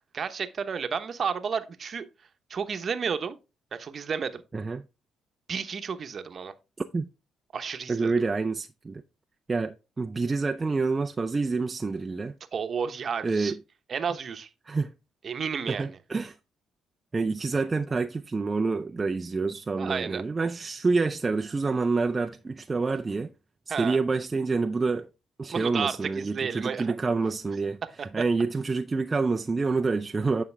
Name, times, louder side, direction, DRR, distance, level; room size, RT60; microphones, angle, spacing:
voice 1, 0.1-2.1 2.5-3.4 3.7-4.4 5.5-6.5 7.5-8.1 12.5-13.5 13.9-14.5 15.2-15.9 19.8-20.2 23.7-24.0 25.5-26.9, right 6 dB, 50° right, 0.9 m, -31 dB
voice 2, 4.5-4.8 6.9-7.1 7.9-9.0 9.5-12.3 13.2-13.6 14.7-14.9 15.7-16.3 17.1-23.3 23.7-25.1 25.4-27.8 28.1-30.4, right 4 dB, 25° right, 0.5 m, -27 dB
9.6 x 5.2 x 3.3 m
cardioid pair, 90°, 0 cm